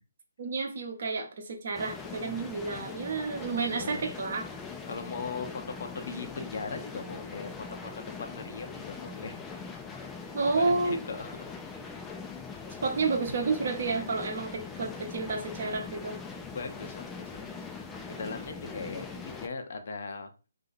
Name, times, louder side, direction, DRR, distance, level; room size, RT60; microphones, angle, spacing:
voice 1, 0.4-4.4 10.3-11.0 12.8-16.2, right 4 dB, 55° right, 4 dB, 0.8 m, -30 dB
sound 1, 1.7-19.5, left 5 dB, 10° left, 0.3 m, -42 dB
voice 2, 3.7-4.1 4.6-7.5 7.9-9.6 10.2-11.5 16.5-20.3, left 4 dB, 55° left, 7 dB, 0.6 m, -40 dB
2.7 x 2.4 x 4.0 m, 0.33 s
figure-of-eight pair, 145°, 0 cm